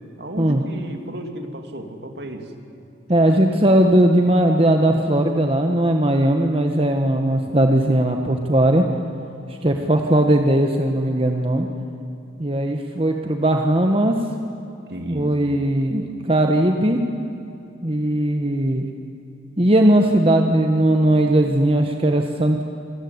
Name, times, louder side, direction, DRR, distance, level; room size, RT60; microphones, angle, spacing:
voice 1, 0.2-2.5 14.9-15.4, right 1 dB, 60° right, 5 dB, 2.9 m, -33 dB
voice 2, 3.1-8.8 9.6-11.7 12.4-14.2 15.1-17.0 17.8-18.8 19.6-22.6, right 1 dB, 30° right, 4 dB, 1.4 m, -18 dB
28.0 x 21.0 x 9.7 m, 2.8 s
head